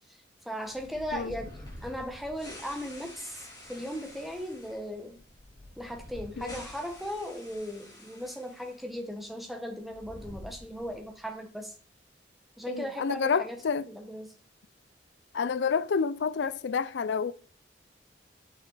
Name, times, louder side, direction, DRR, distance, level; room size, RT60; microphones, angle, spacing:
voice 1, 0.4-1.5 1.8-5.2 5.8-11.7 12.6-13.6 13.9-14.3, equal, ahead, 1.2 m, -37 dB
sound 1, 0.6-8.8 9.0-9.1 9.8-11.1, left 1 dB, 20° left, 3.4 m, -48 dB
voice 2, 12.7-13.8 15.3-17.3, left 5 dB, 75° left, 0.4 m, -29 dB
8.9 x 6.4 x 4.0 m
head